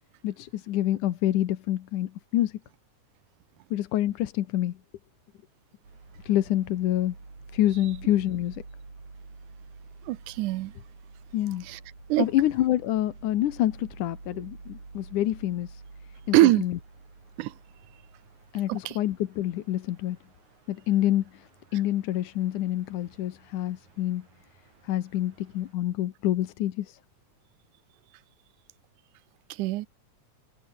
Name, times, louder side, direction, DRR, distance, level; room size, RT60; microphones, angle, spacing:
voice 1, 0.2-2.5 3.7-4.8 6.2-7.1 7.5-8.6 11.3-11.6 12.2-15.7 16.3-16.8 18.5-20.2 20.7-21.4 21.7-24.2 24.8-27.0, left 13 dB, 85° left, 2.7 m, -27 dB
sound 1, 5.8-25.7, right 3 dB, 70° right, 9.0 m, -49 dB
voice 2, 10.1-10.7 11.7-11.8 12.1-12.3 16.3-16.6 17.4-17.5 18.7-19.0 29.6-29.9, right 17 dB, 90° right, 2.3 m, -22 dB
omnidirectional pair, 3.5 m